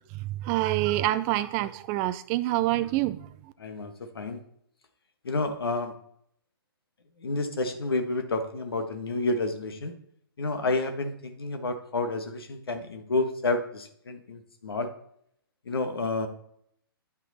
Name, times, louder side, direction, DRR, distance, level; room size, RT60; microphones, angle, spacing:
voice 1, 0.1-3.5, right 15 dB, 25° right, 12 dB, 0.4 m, -27 dB
voice 2, 3.6-4.4 5.2-5.9 7.2-9.9 10.4-14.9 15.7-16.3, left 2 dB, 75° left, 6 dB, 1.4 m, -30 dB
9.7 x 5.8 x 4.1 m, 0.70 s
hypercardioid pair, 130°, 13 cm